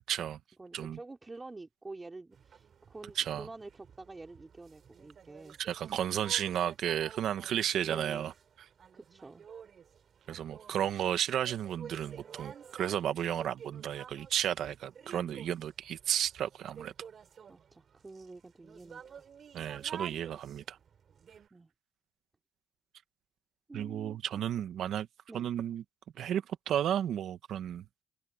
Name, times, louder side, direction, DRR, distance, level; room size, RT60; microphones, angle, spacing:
voice 1, 0.1-0.4 0.7-1.0 3.2-3.5 5.6-8.3 10.3-16.9 19.5-20.8 23.7-25.1 25.3-25.8 26.2-27.8, right 10 dB, 70° right, 1.5 m, -33 dB
voice 2, 0.6-6.0 7.8-8.3 8.9-9.5 17.5-19.3 21.5-21.7 23.7-24.4 25.3-25.5, right 3 dB, 20° right, 3.9 m, -48 dB
sound 1, 2.3-21.5, right 7 dB, 50° right, 4.8 m, -52 dB
cardioid pair, 105°, 0 cm